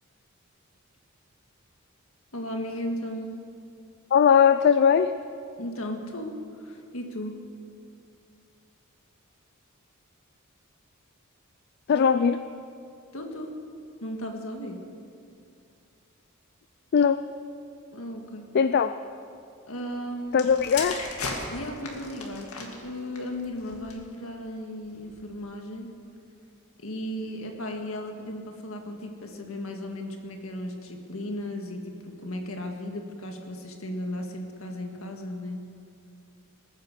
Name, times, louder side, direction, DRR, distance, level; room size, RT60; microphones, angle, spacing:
voice 1, 2.3-3.3 5.6-7.4 13.1-13.6 14.0-14.8 17.9-18.4 19.7-20.5 21.5-25.9 26.8-35.6, left 1 dB, 70° left, 3 dB, 1.9 m, -35 dB
voice 2, 4.1-5.1 11.9-12.4 16.9-17.2 18.5-19.0 20.3-21.0, left 7 dB, 50° left, 11 dB, 0.4 m, -20 dB
sound 1, 20.3-24.2 24.9-25.2, left 3 dB, 90° left, 2.2 m, -36 dB
20.0 x 9.4 x 6.7 m, 2.4 s
head